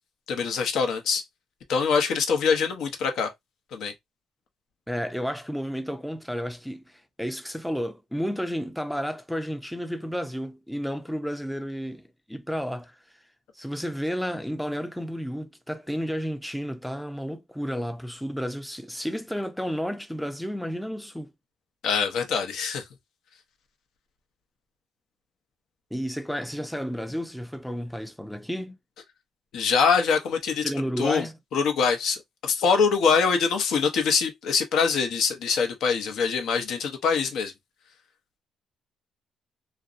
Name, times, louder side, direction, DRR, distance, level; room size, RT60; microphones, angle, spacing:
voice 1, 0.3-1.2 1.7-3.3 3.7-3.9 21.8-22.8 29.5-30.6 31.0-31.3 31.5-37.5, left 5 dB, 75° left, 0.6 m, -24 dB
voice 2, 4.9-13.0 13.5-21.3 25.9-28.8 30.6-31.4, equal, ahead, 0.4 m, -32 dB
2.5 x 2.0 x 2.4 m
cardioid pair, 90°, 0 cm